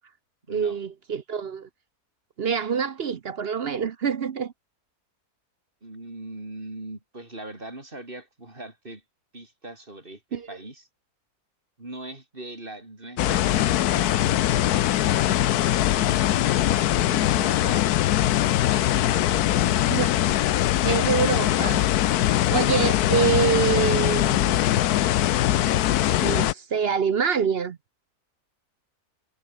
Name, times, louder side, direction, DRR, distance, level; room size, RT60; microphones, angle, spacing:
voice 1, 0.5-1.7 2.4-4.5 10.3-10.5 19.9-20.1 20.8-21.8 22.5-24.6 26.2-27.8, right 6 dB, 50° right, 0.9 m, -25 dB
voice 2, 5.8-9.0 9.3-10.8 11.8-14.4 15.2-17.9 19.1-19.9 22.7-22.9, right 2 dB, 35° right, 4.7 m, -41 dB
sound 1, 13.2-26.5, left 13 dB, 80° left, 1.2 m, -22 dB
omnidirectional pair, 1.6 m